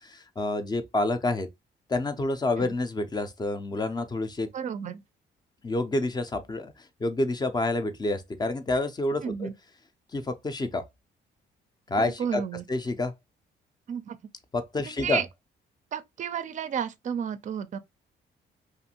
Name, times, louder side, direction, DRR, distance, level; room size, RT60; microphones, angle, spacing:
voice 1, 0.0-1.5 1.9-4.5 5.6-9.5 10.1-10.8 11.9-12.4 12.7-13.1 14.5-15.2, left 2 dB, 20° left, 0.5 m, -28 dB
voice 2, 4.5-5.0 9.2-9.5 12.2-12.6 13.9-14.2 14.9-15.3 15.9-17.8, right 8 dB, 40° right, 0.4 m, -32 dB
2.6 x 2.5 x 2.8 m
cardioid pair, 90°, 20 cm